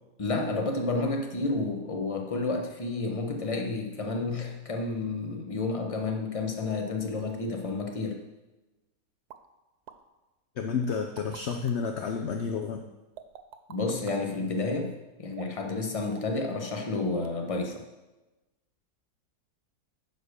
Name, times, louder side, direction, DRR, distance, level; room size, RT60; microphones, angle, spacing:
voice 1, 0.2-8.2 13.7-17.8, left 3 dB, 25° left, 2 dB, 1.0 m, -30 dB
sound 1, 9.3-9.4 9.9-10.0 10.8-11.9 13.2-14.2 15.3-15.7 16.1-16.4 16.7-17.0 17.2-17.3, right 9 dB, 85° right, 1.2 m, -47 dB
voice 2, 10.6-12.8, left 6 dB, 55° left, 4 dB, 0.8 m, -30 dB
9.9 x 4.5 x 6.5 m, 1.1 s
omnidirectional pair, 1.6 m